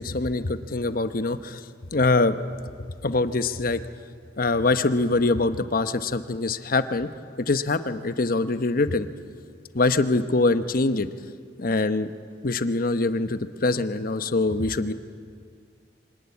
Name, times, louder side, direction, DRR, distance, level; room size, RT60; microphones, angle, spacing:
voice 1, 0.0-1.6 1.9-2.3 2.8-3.8 4.4-7.1 7.5-9.1 9.7-11.1 11.6-12.1 12.4-14.9, left 3 dB, 55° left, 11 dB, 0.9 m, -24 dB
25.0 x 18.5 x 9.6 m, 2.1 s
head